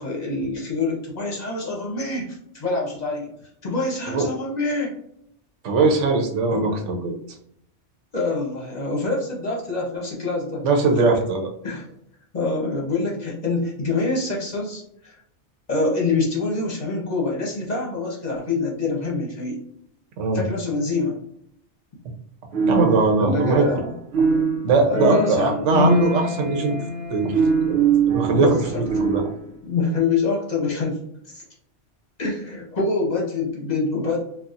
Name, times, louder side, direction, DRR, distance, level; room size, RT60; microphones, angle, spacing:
voice 1, 0.0-3.3 3.6-4.9 6.5-6.8 8.1-10.6 10.9-11.1 11.6-11.9 12.3-15.2 15.7-19.6 20.3-21.2 23.2-23.9 24.3-24.5 24.9-25.6 28.3-28.8 29.3-31.0 31.3-31.4 32.2-34.2, left 3 dB, 40° left, -2 dB, 0.8 m, -25 dB
voice 2, 5.6-7.1 10.6-11.5 20.2-20.4 22.7-23.7 24.6-26.7 27.1-27.3 27.6-27.8 28.1-29.2, right 3 dB, 90° right, 3 dB, 1.1 m, -20 dB
sound 1, 22.5-23.9 24.1-29.4, right 3 dB, 60° right, 0.9 m, -23 dB
4.1 x 2.4 x 2.4 m, 0.72 s
omnidirectional pair, 1.2 m